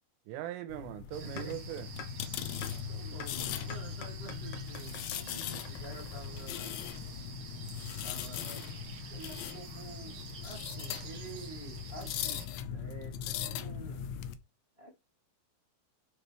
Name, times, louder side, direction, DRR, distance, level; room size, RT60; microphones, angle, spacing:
voice 1, 0.3-1.9, right 13 dB, 85° right, 3.5 m, -40 dB
sound 1, 0.7-14.3, left 9 dB, 80° left, 2.7 m, -40 dB
sound 2, 1.1-12.5, right 5 dB, 65° right, 1.4 m, -48 dB
voice 2, 1.2-1.6 2.6-6.9 8.0-8.6 9.1-10.1 10.4-14.1 14.8-14.9, right 2 dB, 40° right, 0.8 m, -48 dB
sound 3, 1.4-1.5 2.0-2.1 2.6-2.7 3.2-3.3 3.7-6.6, left 6 dB, 55° left, 2.2 m, -45 dB
12.5 x 5.6 x 3.5 m
omnidirectional pair, 5.7 m